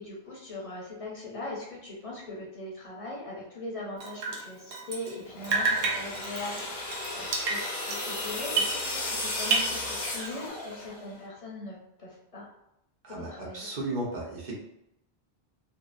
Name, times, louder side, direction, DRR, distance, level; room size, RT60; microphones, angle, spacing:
voice 1, 0.0-7.6 7.9-12.5 13.1-13.7, left 2 dB, 35° left, -4 dB, 0.8 m, -40 dB
Drip, 4.0-5.2 5.4-9.2 9.4-10.5, right 4 dB, 75° right, 0.8 m, -31 dB
sound 1, 5.3-11.1, left 2 dB, 70° left, 1.0 m, -35 dB
voice 2, 13.0-14.6, right 1 dB, 50° right, -4 dB, 1.0 m, -35 dB
2.8 x 2.7 x 2.4 m, 0.84 s
omnidirectional pair, 1.0 m